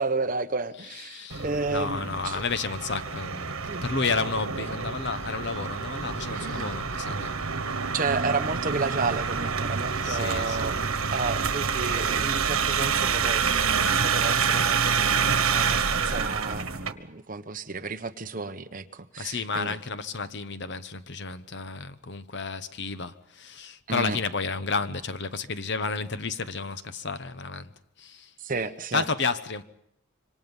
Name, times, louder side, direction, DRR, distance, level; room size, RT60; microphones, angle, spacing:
voice 1, 0.0-2.4 3.7-3.8 6.3-6.8 7.9-10.8 11.1-19.8 23.9-24.2 28.4-29.0, right 3 dB, 40° right, 1.1 m, -32 dB
voice 2, 0.9-3.6 3.8-7.4 10.0-10.8 19.2-27.7 28.0-28.3 28.9-29.6, left 4 dB, 55° left, 1.0 m, -31 dB
sound 1, 1.3-16.9, right 6 dB, 90° right, 1.4 m, -27 dB
26.5 x 25.0 x 5.5 m
head